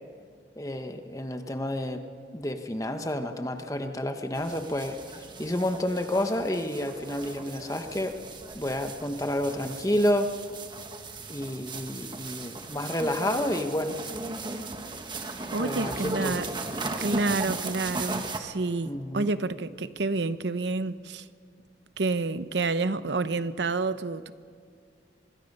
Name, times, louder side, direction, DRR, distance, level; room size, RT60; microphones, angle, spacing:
voice 1, 0.6-2.0 2.3-8.2 8.5-10.3 11.3-14.0 15.6-16.4 18.9-19.3, left 1 dB, 20° left, 1.1 m, -30 dB
sound 1, 4.3-18.4, right 3 dB, 25° right, 1.3 m, -37 dB
voice 2, 15.5-16.4 17.0-21.2 22.0-24.3, right 3 dB, 75° right, 0.8 m, -29 dB
25.5 x 20.5 x 5.5 m
head